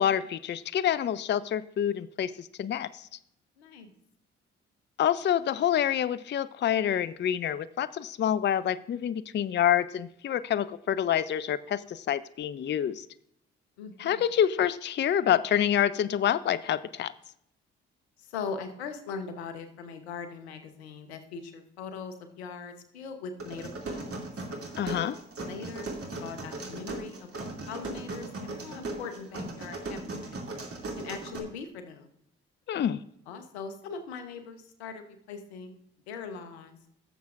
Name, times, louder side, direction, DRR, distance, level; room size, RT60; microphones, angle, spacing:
voice 1, 0.0-3.1 5.0-13.1 14.0-17.1 24.8-25.2 32.7-33.0, left 10 dB, 35° left, 16 dB, 0.5 m, -27 dB
voice 2, 3.6-3.9 13.8-14.3 18.2-24.3 25.4-30.4 31.0-32.1 33.3-35.8 36.1-36.8, left 5 dB, 90° left, 8 dB, 0.9 m, -41 dB
sound 1, 23.4-31.4, right 2 dB, 45° right, 2.6 m, -38 dB
16.5 x 7.1 x 2.5 m, 0.75 s
hypercardioid pair, 45°, 31 cm